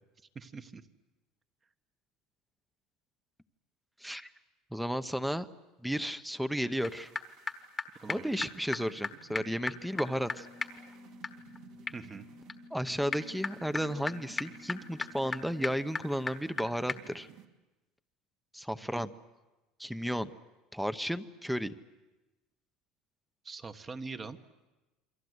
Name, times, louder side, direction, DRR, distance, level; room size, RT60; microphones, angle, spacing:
voice 1, 0.3-0.8 8.0-8.4 11.9-12.3 18.9-19.1 23.4-24.4, right 4 dB, 20° right, 9 dB, 1.3 m, -43 dB
voice 2, 4.7-5.5 5.8-7.1 8.1-10.5 12.7-17.3 18.5-19.1 19.8-20.3 20.7-21.7, equal, ahead, 12 dB, 0.9 m, -33 dB
sound 1, 6.8-6.9 7.2-7.3 7.5-7.6 7.8-7.9 8.1-8.2 8.4-8.5 8.7-8.8 9.0-9.1 9.3-16.6 16.9-17.0, left 4 dB, 15° left, 1.3 m, -39 dB
sound 2, 6.8-17.5, right 8 dB, 60° right, 2.7 m, -57 dB
28.5 x 23.5 x 8.0 m, 1.1 s
cardioid pair, 145°, 0 cm